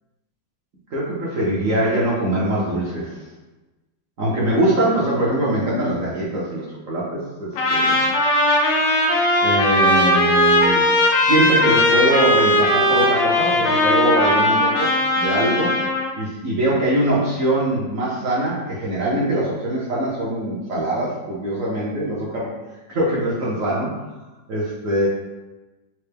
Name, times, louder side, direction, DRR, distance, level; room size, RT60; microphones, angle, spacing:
voice 1, 0.9-3.2 4.2-8.0 9.4-10.8 11.2-15.7 16.2-22.5 22.9-23.9 24.5-25.1, right 1 dB, 60° right, -6 dB, 0.9 m, -22 dB
Trumpet, 7.6-16.1, left 1 dB, 85° left, 1.5 m, -18 dB
4.4 x 2.1 x 3.3 m, 1.1 s
omnidirectional pair, 2.0 m